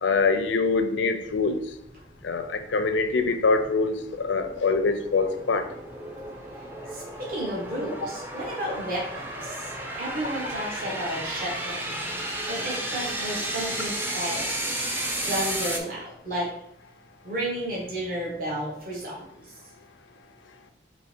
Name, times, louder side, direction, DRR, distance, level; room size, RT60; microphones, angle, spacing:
voice 1, 0.0-1.6 2.2-5.7, left 4 dB, 80° left, 9 dB, 0.5 m, -24 dB
sound 1, 1.2-15.8, right 1 dB, 10° right, 0.5 m, -34 dB
voice 2, 6.9-9.7 10.0-14.5 15.2-16.5 17.2-19.6, right 1 dB, 50° right, -5 dB, 1.2 m, -32 dB
4.0 x 2.8 x 4.3 m, 0.71 s
head